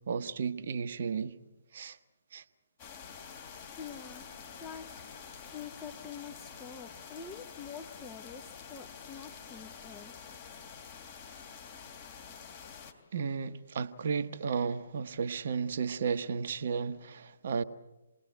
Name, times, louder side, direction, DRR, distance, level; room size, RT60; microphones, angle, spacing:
voice 1, 0.1-1.3 1.7-2.0 2.3-2.4 13.1-17.6, right 6 dB, 50° right, 1.1 m, -33 dB
sound 1, 2.8-12.9, left 6 dB, 30° left, 3.2 m, -48 dB
voice 2, 3.7-4.3 4.6-5.1 5.4-10.1, left 7 dB, 10° left, 1.1 m, -46 dB
28.0 x 20.0 x 7.9 m
figure-of-eight pair, 135°, 0 cm